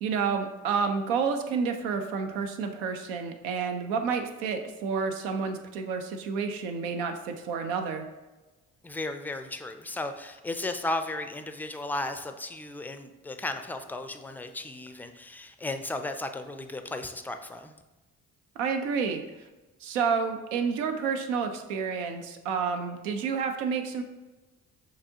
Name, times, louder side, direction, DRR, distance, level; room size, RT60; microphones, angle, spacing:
voice 1, 0.0-8.1 18.6-19.2 19.8-24.0, right 5 dB, 90° right, 6 dB, 0.6 m, -29 dB
voice 2, 8.8-17.7, left 2 dB, 5° left, 8 dB, 0.4 m, -35 dB
6.7 x 2.8 x 2.7 m, 1.1 s
hypercardioid pair, 50°, 41 cm